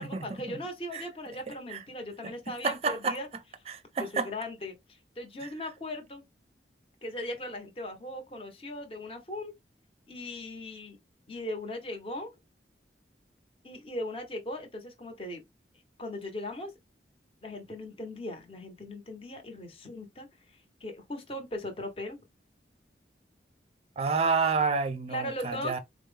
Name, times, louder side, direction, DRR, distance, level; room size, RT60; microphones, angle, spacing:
voice 1, 0.0-3.3 4.0-6.2 7.0-9.5 10.1-11.0 11.3-12.3 13.6-15.4 16.0-16.7 17.4-22.2 25.1-25.8, left 1 dB, 30° left, 0.8 m, -38 dB
voice 2, 2.6-3.2 3.7-4.3 24.0-25.8, right 4 dB, 35° right, 0.5 m, -29 dB
4.3 x 2.0 x 3.2 m
head